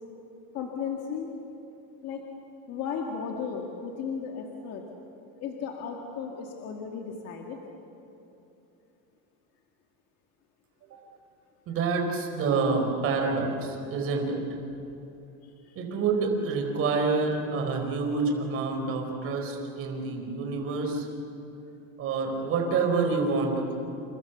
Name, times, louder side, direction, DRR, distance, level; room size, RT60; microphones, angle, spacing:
voice 1, 0.5-1.3 2.0-2.2 2.7-4.8 5.4-7.6 15.4-15.8, left 6 dB, 35° left, 1 dB, 2.1 m, -35 dB
voice 2, 11.7-14.4 15.8-21.1 22.0-23.8, right 4 dB, 30° right, 2 dB, 4.2 m, -27 dB
29.5 x 28.5 x 6.9 m, 2.9 s
cardioid pair, 175°, 42 cm